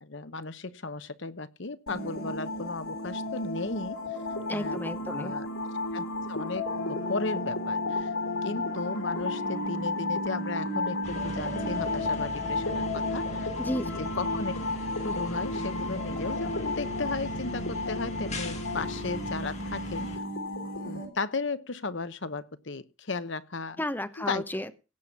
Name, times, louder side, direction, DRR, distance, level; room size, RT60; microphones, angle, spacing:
voice 1, 0.0-4.0 4.5-5.5 5.9-8.1 8.4-13.5 13.9-14.5 15.0-20.1 20.8-23.8 24.3-24.5, left 3 dB, 60° left, 13 dB, 1.0 m, -35 dB
sound 1, 1.9-21.1, left 2 dB, 90° left, 3.9 m, -33 dB
voice 2, 4.5-5.3 13.6-14.0 23.8-24.7, left 1 dB, 10° left, 10 dB, 0.9 m, -33 dB
sound 2, 11.0-20.2, left 1 dB, 30° left, 2.1 m, -40 dB
17.5 x 7.0 x 5.9 m, 0.31 s
head